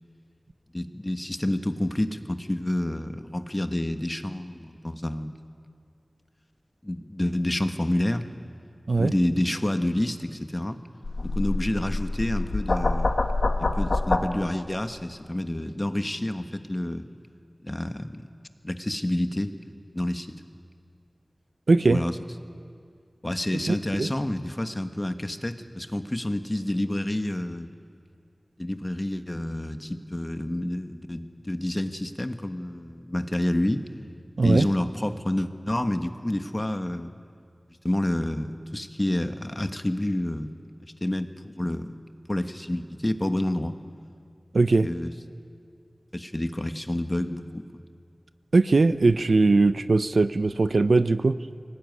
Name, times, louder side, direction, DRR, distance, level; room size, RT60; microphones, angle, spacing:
voice 1, 0.7-5.3 6.8-8.2 8.9-10.8 11.2-13.2 13.6-17.0 17.6-18.3 18.6-19.5 19.9-20.4 21.9-22.1 23.2-27.7 28.6-33.8 34.4-37.1 37.8-40.5 40.8-41.9 42.3-43.8 44.8-45.1 46.1-47.6, left 1 dB, 25° left, 9 dB, 1.4 m, -28 dB
sound 1, 11.0-14.2, left 2 dB, 80° left, 1.6 m, -26 dB
voice 2, 21.7-22.0 23.7-24.1 34.4-34.7 44.5-44.9 48.5-51.4, right 3 dB, 85° right, 13 dB, 0.7 m, -20 dB
23.5 x 18.5 x 9.5 m, 2.2 s
wide cardioid pair, 50°, 0 cm